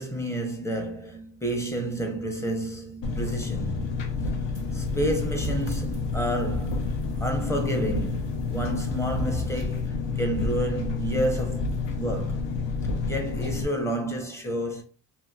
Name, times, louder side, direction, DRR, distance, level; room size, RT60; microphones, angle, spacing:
voice 1, 0.0-4.0 4.7-6.9 7.2-12.4 13.0-14.8, right 1 dB, 5° left, 0.6 m, -30 dB
Engine, 3.0-13.6, left 4 dB, 80° left, 0.7 m, -29 dB
sound 1, 4.5-9.9, left 1 dB, 30° left, 1.0 m, -39 dB
2.8 x 2.8 x 2.3 m
cardioid pair, 110°, 43 cm